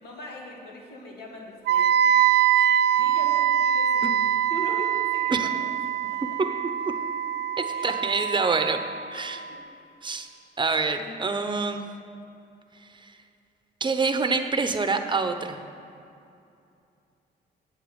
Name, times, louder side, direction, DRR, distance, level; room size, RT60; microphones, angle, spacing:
voice 1, 0.0-2.2 3.0-4.2 4.5-5.5 6.1-6.2 7.7-7.9 9.5-9.6 11.0-11.2, left 1 dB, 70° left, -2 dB, 2.5 m, -40 dB
Wind instrument woodwind instrument, 1.7-9.6, right 10 dB, 70° right, 0.5 m, -24 dB
voice 2, 7.6-8.8 9.1-9.4 10.0-10.3 10.6-11.9 13.0-13.1 13.8-15.6, right 4 dB, 25° right, 7 dB, 0.9 m, -26 dB
8.3 x 8.1 x 8.0 m, 2.6 s
cardioid pair, 85°, 18 cm